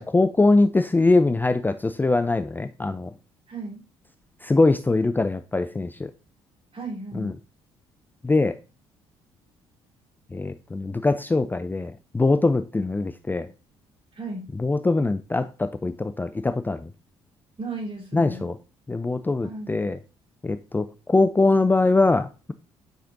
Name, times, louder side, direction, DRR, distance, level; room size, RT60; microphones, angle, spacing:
voice 1, 0.0-3.1 4.4-6.1 7.1-7.3 8.2-8.5 10.3-13.5 14.6-16.9 18.1-18.5 18.9-20.0 20.4-22.5, left 3 dB, 15° left, 10 dB, 0.5 m, -22 dB
voice 2, 3.5-3.8 6.7-7.3 14.1-14.5 17.6-18.5 19.4-19.8, right 2 dB, 40° right, -1 dB, 3.3 m, -35 dB
8.7 x 5.0 x 2.6 m, 0.32 s
figure-of-eight pair, 50°, 14 cm